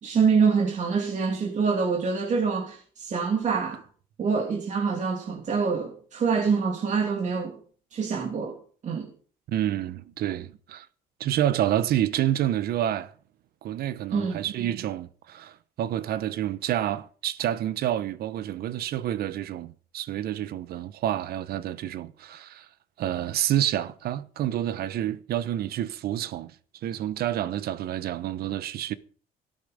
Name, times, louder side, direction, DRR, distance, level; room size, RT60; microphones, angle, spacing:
voice 1, 0.0-3.8 4.2-7.5 7.9-8.6 8.8-9.1 14.1-14.4, right 5 dB, 45° right, 2.8 m, -25 dB
voice 2, 9.5-10.9 11.2-13.1 13.6-22.7 23.0-26.5 26.8-28.9, right 12 dB, 65° right, 1.0 m, -28 dB
14.5 x 11.5 x 5.1 m
cardioid pair, 110°, 17 cm